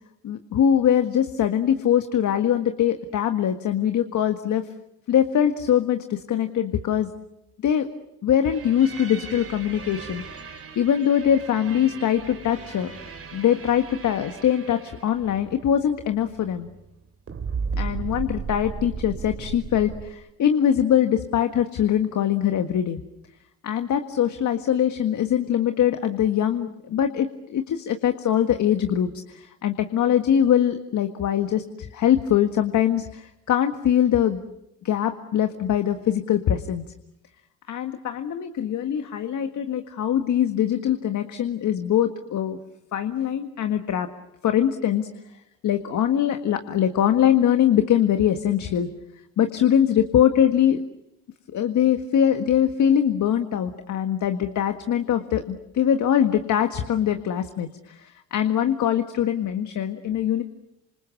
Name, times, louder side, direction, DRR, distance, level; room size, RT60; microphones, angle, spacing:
voice 1, 0.2-4.6 5.1-7.1 7.6-7.9 8.2-12.9 13.3-16.7 17.8-23.0 23.6-34.4 34.8-36.8 37.7-42.6 42.9-44.1 44.4-45.1 45.6-48.9 49.4-50.8 51.5-60.4, left 9 dB, 60° left, 7 dB, 1.8 m, -22 dB
sound 1, 8.4-17.0 17.3-20.1, right 5 dB, 45° right, 3.2 m, -36 dB
28.0 x 27.0 x 7.2 m, 0.87 s
supercardioid pair, 80°, 33 cm